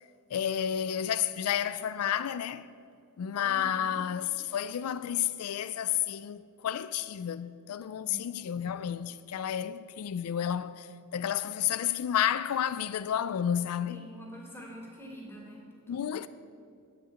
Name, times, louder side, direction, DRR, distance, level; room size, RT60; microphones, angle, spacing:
voice 1, 0.3-2.7 3.2-14.1 15.9-16.3, left 9 dB, 90° left, 0.4 m, -31 dB
voice 2, 3.4-4.0 8.0-8.3 13.9-16.1, equal, 10° left, 2.6 m, -47 dB
8.7 x 8.4 x 8.5 m
head